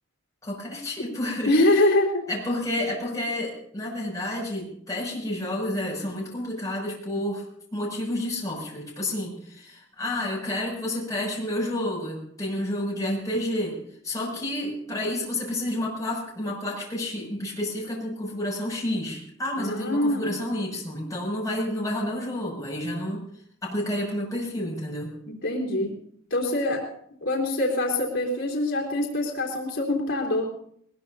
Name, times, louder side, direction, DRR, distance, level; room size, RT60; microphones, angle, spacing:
voice 1, 0.4-1.5 1.8-1.9 2.3-7.4 7.7-13.8 14.0-23.3 23.6-25.1 25.8-25.9, left 1 dB, 15° left, -3 dB, 6.4 m, -30 dB
voice 2, 1.5-2.2 19.6-20.3 25.3-25.9 26.3-26.9 27.2-30.5, left 1 dB, 70° left, -2 dB, 3.4 m, -24 dB
21.0 x 20.5 x 2.7 m, 0.66 s
head